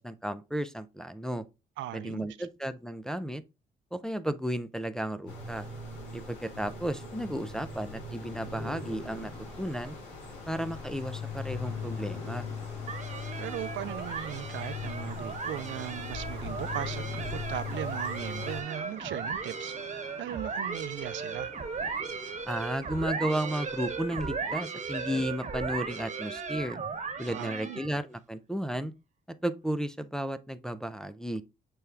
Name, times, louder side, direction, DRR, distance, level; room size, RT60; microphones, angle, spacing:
voice 1, 0.0-1.4 1.9-3.4 3.9-5.7 6.1-9.3 9.6-10.0 10.5-12.5 22.5-26.8 27.2-28.9 29.4-31.4, equal, 5° left, 0.4 m, -33 dB
voice 2, 1.8-2.5 13.4-21.5 27.3-27.8, right 13 dB, 70° right, 0.4 m, -38 dB
sound 1, 5.3-18.6, left 4 dB, 65° left, 2.6 m, -39 dB
sound 2, 8.8-24.5, left 2 dB, 30° left, 2.2 m, -52 dB
sound 3, 12.9-28.0, right 5 dB, 40° right, 1.2 m, -36 dB
6.8 x 2.3 x 3.2 m
cardioid pair, 90°, 20 cm